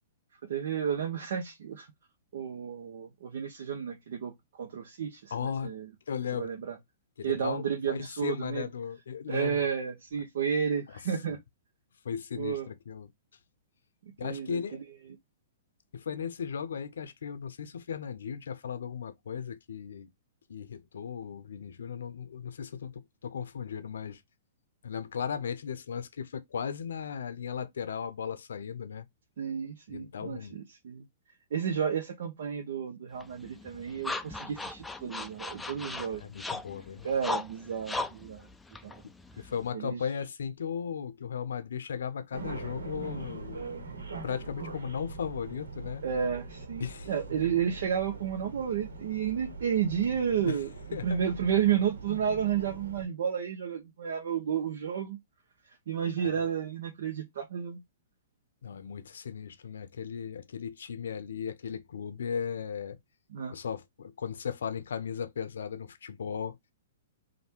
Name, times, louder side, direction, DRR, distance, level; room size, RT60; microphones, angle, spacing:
voice 1, 0.5-1.9 2.3-5.9 6.3-6.7 7.2-8.7 9.3-11.4 12.4-12.7 14.2-14.8 29.4-31.1 31.5-36.2 37.0-38.5 38.8-39.0 39.7-40.0 46.0-50.7 51.0-55.2 55.9-57.8 63.3-63.5, right 8 dB, 70° right, 0.9 m, -32 dB
voice 2, 5.3-5.7 6.1-6.5 7.2-9.6 12.0-13.1 14.2-14.8 15.9-20.1 20.5-24.2 24.8-29.0 29.9-30.6 36.1-37.1 39.4-43.6 44.2-46.0 46.8-47.1 50.5-50.6 50.9-51.2 56.2-56.3 58.6-63.0 63.5-66.6, left 7 dB, 80° left, 0.5 m, -36 dB
sound 1, 33.2-39.7, left 2 dB, 5° left, 0.3 m, -38 dB
sound 2, 42.3-53.0, right 3 dB, 90° right, 1.3 m, -42 dB
3.3 x 2.6 x 4.3 m
hypercardioid pair, 135°, 0 cm